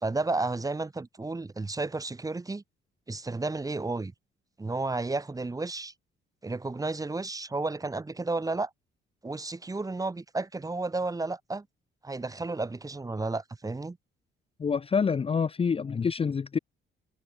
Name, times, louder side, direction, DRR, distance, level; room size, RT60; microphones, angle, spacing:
voice 1, 0.0-2.6 3.1-4.1 4.6-5.9 6.4-8.7 9.2-11.7 12.0-14.0, right 3 dB, 15° right, 1.2 m, -32 dB
voice 2, 14.6-16.6, left 6 dB, 30° left, 0.6 m, -27 dB
cardioid pair, 90°, 20 cm